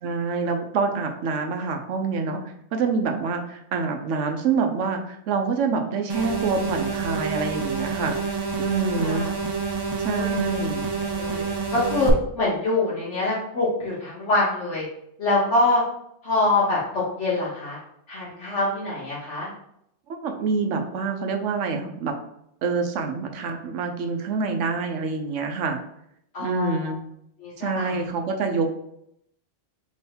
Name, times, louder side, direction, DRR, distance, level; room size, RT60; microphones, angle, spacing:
voice 1, 0.0-2.4 2.7-9.3 10.0-10.8 20.1-22.1 22.6-25.8 26.4-27.0 27.6-28.7, right 4 dB, 75° right, 5 dB, 1.0 m, -26 dB
sound 1, 6.1-12.1, right 5 dB, 40° right, 0.3 m, -28 dB
voice 2, 9.0-9.3 10.1-10.5 11.2-11.4 11.7-14.8 15.2-15.8 16.2-17.8 18.1-19.5 26.3-26.9 27.4-28.1, left 2 dB, 65° left, -7 dB, 1.3 m, -25 dB
3.5 x 3.1 x 4.2 m, 0.76 s
omnidirectional pair, 1.3 m